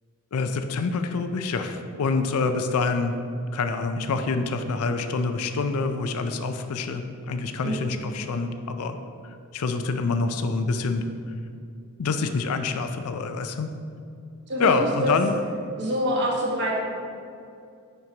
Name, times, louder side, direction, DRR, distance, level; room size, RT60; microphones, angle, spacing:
voice 1, 0.3-3.2 3.5-9.0 9.5-11.0 12.0-13.7 14.6-15.3, left 4 dB, 80° left, 7 dB, 0.4 m, -26 dB
voice 2, 7.6-7.9 14.5-15.1 15.8-16.8, equal, 50° right, -3 dB, 1.4 m, -26 dB
10.5 x 4.6 x 2.9 m, 2.5 s
head